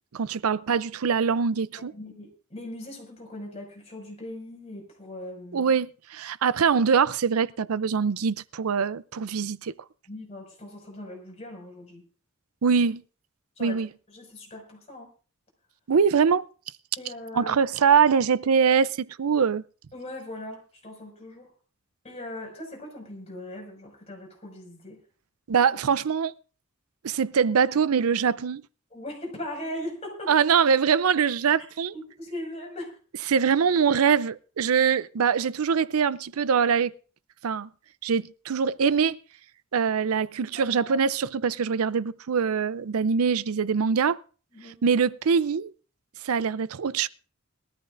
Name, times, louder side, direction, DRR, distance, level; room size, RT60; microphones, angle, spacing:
voice 1, 0.1-1.9 5.5-9.7 12.6-13.0 13.6-13.9 15.9-16.4 17.3-19.6 25.5-26.3 27.0-28.6 30.3-31.9 33.3-36.9 37.4-37.7 38.0-39.2 39.7-44.2 44.8-45.7 46.2-47.1, right 6 dB, 85° right, 0.5 m, -23 dB
voice 2, 1.9-5.7 10.1-12.0 13.6-15.1 17.0-17.6 19.9-21.5 22.0-25.0 28.9-30.3 31.9-33.0 40.6-41.0 44.5-44.8, left 1 dB, 30° left, 5.8 m, -39 dB
21.5 x 14.0 x 2.5 m
head